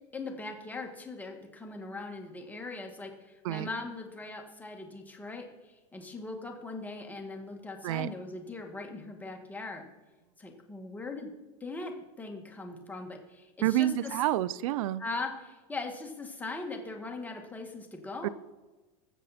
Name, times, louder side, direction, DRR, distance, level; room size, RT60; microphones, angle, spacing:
voice 1, 0.1-5.4 5.9-9.9 10.4-11.3 11.6-13.5 13.8-14.1 15.0-18.3, left 3 dB, 10° left, 2 dB, 1.8 m, -40 dB
voice 2, 13.6-15.0 18.2-18.3, right 14 dB, 75° right, 19 dB, 0.6 m, -28 dB
20.0 x 7.3 x 4.3 m, 1.2 s
supercardioid pair, 125°, 17 cm